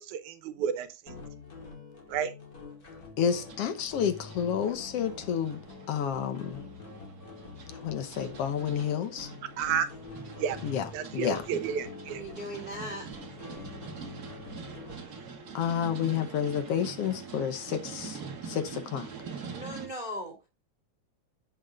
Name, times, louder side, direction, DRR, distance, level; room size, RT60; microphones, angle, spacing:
voice 1, 0.1-1.2 2.1-2.3 9.6-9.9 10.4-10.6 10.9-12.2, right 8 dB, 80° right, 2.4 m, -31 dB
sound 1, 1.1-15.2, left 4 dB, 30° left, 2.5 m, -46 dB
voice 2, 3.2-5.6 5.9-6.6 7.7-9.3 10.6-11.4 15.5-19.1, left 8 dB, 65° left, 1.7 m, -30 dB
sound 2, 3.2-19.9, right 6 dB, 40° right, 1.6 m, -45 dB
voice 3, 12.1-13.1 19.5-20.4, equal, 20° right, 2.4 m, -38 dB
17.0 x 6.3 x 2.4 m
omnidirectional pair, 3.4 m